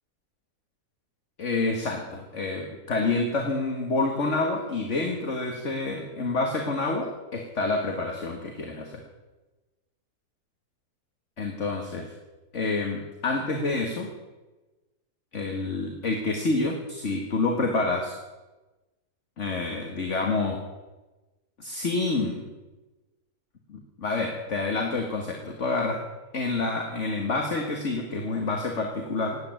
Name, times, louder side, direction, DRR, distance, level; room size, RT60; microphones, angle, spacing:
voice 1, 1.4-9.0 11.4-12.1 12.5-14.1 15.3-18.1 19.4-20.6 21.6-22.5 23.7-26.0 26.3-29.4, left 3 dB, 45° left, 2 dB, 2.0 m, -28 dB
18.0 x 8.9 x 8.9 m, 1.1 s
omnidirectional pair, 1.9 m